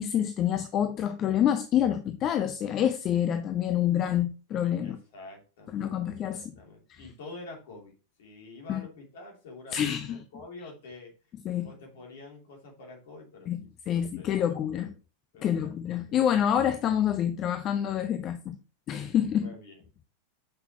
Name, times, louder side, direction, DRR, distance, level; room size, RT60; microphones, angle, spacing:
voice 1, 0.0-5.0 5.7-6.6 6.9-7.0 8.7-8.8 9.7-10.2 11.4-11.7 13.5-13.6 13.9-14.9 15.4-18.6 18.9-19.5, left 10 dB, 30° left, 0.6 m, -27 dB
voice 2, 4.8-6.0 6.3-11.1 11.6-14.9 15.3-16.2 19.4-20.0, left 2 dB, 55° left, 3.0 m, -47 dB
7.6 x 5.8 x 3.0 m
figure-of-eight pair, 90°, 0 cm